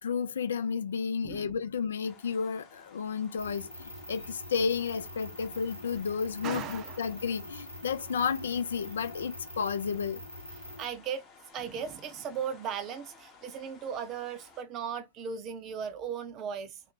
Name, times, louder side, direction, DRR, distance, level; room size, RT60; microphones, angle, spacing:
voice 1, 0.0-10.2, left 6 dB, 65° left, 0.4 m, -32 dB
voice 2, 1.2-1.5 6.4-7.1 10.8-11.2 11.5-16.8, right 7 dB, 35° right, 0.6 m, -37 dB
sound 1, 2.0-14.6, left 4 dB, 30° left, 0.8 m, -57 dB
sound 2, 3.4-10.9, left 1 dB, 85° left, 0.8 m, -45 dB
3.0 x 2.1 x 3.8 m
figure-of-eight pair, 90°, 0 cm